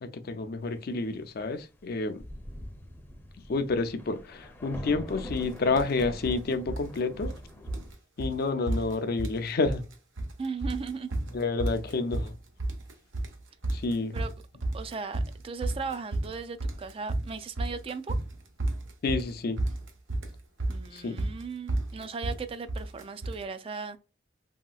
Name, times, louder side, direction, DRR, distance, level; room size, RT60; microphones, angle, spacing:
voice 1, 0.0-2.2 3.5-7.3 8.2-9.8 11.3-12.3 13.7-14.2 19.0-19.6 20.9-21.2, left 3 dB, 55° left, 0.4 m, -29 dB
Thunder, 1.8-1.9 2.1-7.9, left 1 dB, 10° left, 0.6 m, -43 dB
sound 1, 5.3-5.5 5.8-6.4 6.7-7.4 7.7-7.9 8.2-8.4 8.7-9.4 9.7-10.3 10.6-23.4, right 2 dB, 90° right, 0.8 m, -32 dB
voice 2, 10.4-11.1 14.1-14.3 14.7-18.2 20.7-24.0, right 5 dB, 30° right, 0.3 m, -37 dB
3.0 x 2.8 x 2.3 m
head